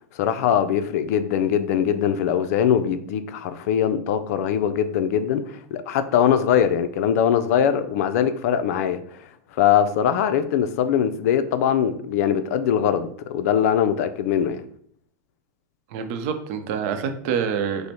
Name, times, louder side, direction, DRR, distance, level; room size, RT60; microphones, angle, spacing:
voice 1, 0.1-9.2 9.6-14.6, left 9 dB, 65° left, 11 dB, 0.5 m, -22 dB
voice 2, 15.9-17.9, right 7 dB, 55° right, 7 dB, 0.7 m, -26 dB
5.2 x 2.1 x 4.3 m, 0.63 s
supercardioid pair, 135°, 9 cm